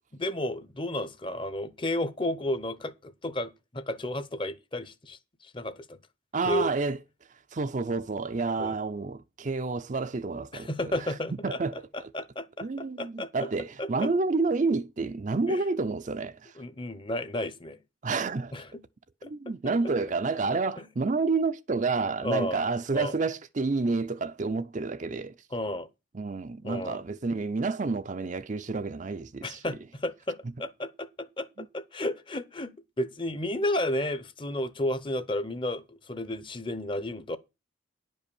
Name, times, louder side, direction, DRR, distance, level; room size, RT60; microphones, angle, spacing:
voice 1, 0.1-6.0 6.4-6.7 8.6-8.8 10.5-13.5 13.8-14.1 15.5-15.6 16.6-17.8 18.5-18.8 19.2-19.3 20.8-20.9 22.2-22.6 22.9-23.1 25.5-25.9 26.6-27.0 29.4-37.4, left 1 dB, 25° left, 0.7 m, -33 dB
voice 2, 6.3-7.0 7.5-10.7 11.4-12.1 12.6-16.5 18.0-18.6 19.2-25.3 26.1-29.6, right 3 dB, 35° right, 0.5 m, -29 dB
10.5 x 5.4 x 6.9 m
head